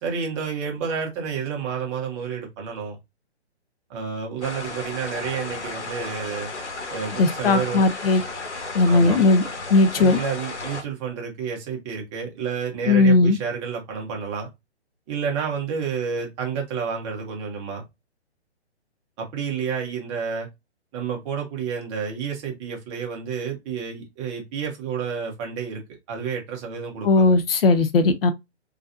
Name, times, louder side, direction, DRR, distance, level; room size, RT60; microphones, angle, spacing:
voice 1, 0.0-3.0 3.9-6.5 6.9-7.8 8.8-9.2 10.0-14.5 15.1-17.8 19.2-20.5 20.9-25.8 26.1-27.3, right 6 dB, 25° right, 1.4 m, -30 dB
sound 1, 4.4-10.8, left 3 dB, 80° left, 1.7 m, -34 dB
voice 2, 7.2-8.2 8.7-9.4 9.7-10.2 12.9-13.4 27.0-28.3, left 3 dB, 55° left, 0.7 m, -17 dB
3.9 x 3.9 x 2.6 m
hypercardioid pair, 145°, 34 cm